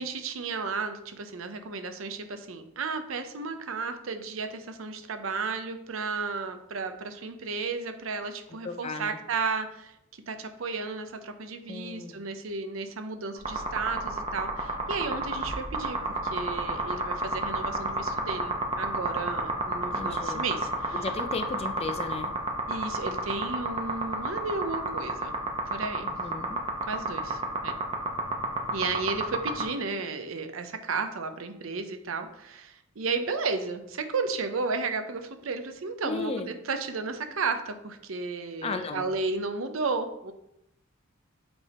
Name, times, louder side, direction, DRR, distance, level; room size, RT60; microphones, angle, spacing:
voice 1, 0.0-9.9 10.3-21.0 22.7-25.4 25.7-26.1 26.8-27.8 28.7-40.3, right 4 dB, 80° right, 8 dB, 0.7 m, -33 dB
voice 2, 8.5-9.2 11.7-12.2 19.9-20.4 20.9-22.3 26.0-26.6 36.0-36.5 38.6-39.1, left 3 dB, 30° left, 7 dB, 0.4 m, -35 dB
sound 1, 13.4-29.6, right 3 dB, 30° right, 0.9 m, -29 dB
7.0 x 3.5 x 4.2 m, 0.80 s
head